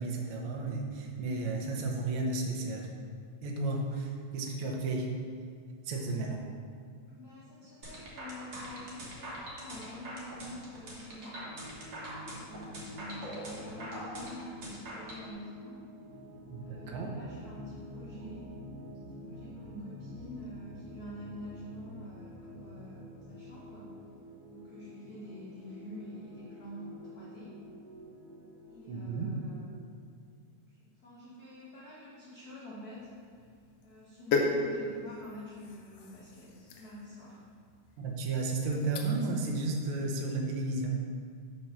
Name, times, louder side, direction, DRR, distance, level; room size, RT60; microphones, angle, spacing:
voice 1, 0.0-2.9 3.4-5.1 5.8-6.4 16.5-17.1 18.2-18.4 18.8-19.0 19.5-20.0 28.9-29.3 38.0-41.0, right 3 dB, 80° right, 0 dB, 1.1 m, -33 dB
voice 2, 5.9-6.4 7.1-11.4 12.3-15.8 16.6-18.4 19.3-24.0 24.5-27.5 28.6-29.6 30.7-30.8 31.0-33.5 33.8-37.4, left 1 dB, 90° left, -8 dB, 0.8 m, -47 dB
sound 1, 7.8-15.2, right 1 dB, 50° right, 1.6 m, -43 dB
sound 2, 11.4-29.7, left 1 dB, 25° right, 0.5 m, -48 dB
sound 3, 32.9-39.4 39.8-40.1, left 3 dB, 75° left, 1.5 m, -37 dB
6.1 x 4.5 x 5.9 m, 2.2 s
omnidirectional pair, 3.5 m